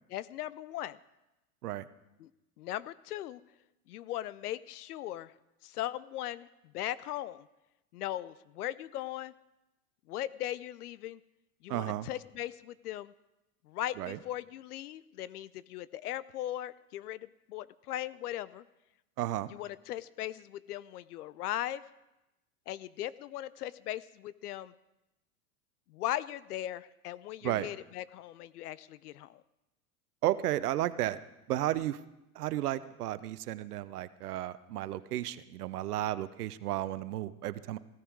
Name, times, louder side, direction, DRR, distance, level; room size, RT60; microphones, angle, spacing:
voice 1, 0.1-1.0 2.2-2.3 2.6-3.4 3.9-5.3 5.6-6.5 6.7-7.5 7.9-9.3 10.1-11.2 11.6-13.1 13.6-18.6 19.5-21.8 22.7-24.7 25.9-29.4, left 13 dB, 75° left, 18 dB, 0.7 m, -38 dB
voice 2, 11.7-12.1 14.0-14.2 19.2-19.5 27.4-27.7 30.2-31.2 31.5-32.0 32.4-37.8, right 14 dB, 75° right, 15 dB, 0.9 m, -33 dB
16.0 x 13.5 x 4.7 m, 0.95 s
hypercardioid pair, 90°, 46 cm